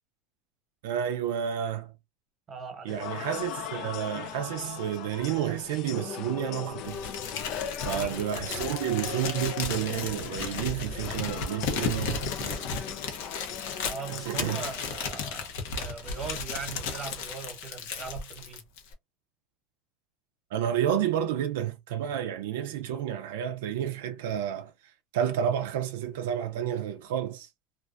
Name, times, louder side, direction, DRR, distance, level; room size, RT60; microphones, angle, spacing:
voice 1, 0.8-1.9 2.8-7.0 7.8-12.8 14.3-14.7 20.5-24.7 25.1-27.5, right 10 dB, 85° right, 0.4 m, -30 dB
voice 2, 2.5-2.9 7.8-8.3 13.8-18.7, right 5 dB, 30° right, 0.9 m, -40 dB
sound 1, 2.9-14.7, left 9 dB, 55° left, 0.3 m, -39 dB
Crumpling crinkling, 6.8-18.9, left 5 dB, 80° left, 0.7 m, -34 dB
2.4 x 2.2 x 2.4 m
supercardioid pair, 115°, 0 cm